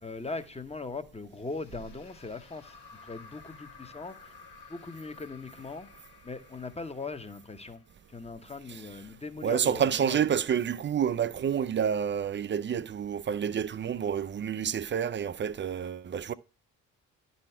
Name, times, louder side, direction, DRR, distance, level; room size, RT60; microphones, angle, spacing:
voice 1, 0.0-4.3 4.7-5.9 6.2-7.8 8.1-10.3, left 3 dB, 15° left, 0.9 m, -40 dB
sound 1, 1.3-8.6, left 5 dB, 60° left, 1.6 m, -54 dB
voice 2, 9.4-16.3, right 8 dB, 30° right, 0.4 m, -29 dB
10.5 x 4.2 x 4.3 m
hypercardioid pair, 45°, 44 cm